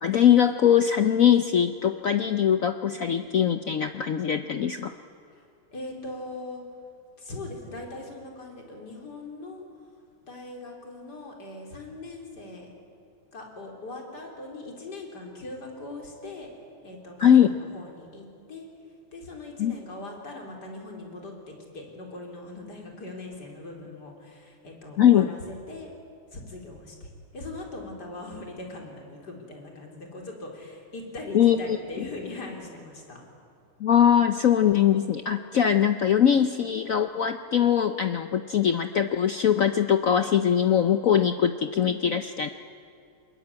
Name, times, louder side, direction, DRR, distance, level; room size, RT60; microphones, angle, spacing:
voice 1, 0.0-4.9 17.2-17.5 19.6-19.7 25.0-25.3 31.3-32.1 33.8-42.5, left 9 dB, 75° left, 9 dB, 0.7 m, -21 dB
voice 2, 5.7-6.6 7.2-9.7 10.3-12.7 13.3-16.5 16.8-18.7 19.1-25.9 26.3-33.2, left 2 dB, 50° left, 1 dB, 4.2 m, -40 dB
23.0 x 21.5 x 9.7 m, 2.4 s
omnidirectional pair, 2.4 m